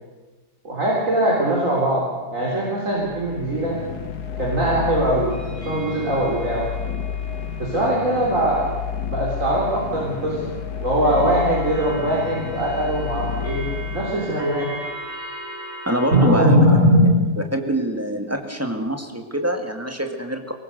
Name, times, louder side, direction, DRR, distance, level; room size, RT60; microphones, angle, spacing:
voice 1, 0.6-3.8 4.4-6.7 7.6-8.7 9.1-10.5 10.8-14.7 16.1-17.1, right 1 dB, 50° right, -4 dB, 4.2 m, -21 dB
sound 1, 3.0-14.8, left 8 dB, 70° left, 1.8 m, -31 dB
sound 2, 3.9-16.3, right 1 dB, 70° right, 8.1 m, -40 dB
voice 2, 15.9-16.7 17.5-20.5, right 1 dB, 10° right, 4 dB, 1.8 m, -24 dB
23.0 x 19.5 x 6.7 m, 1.3 s
omnidirectional pair, 1.8 m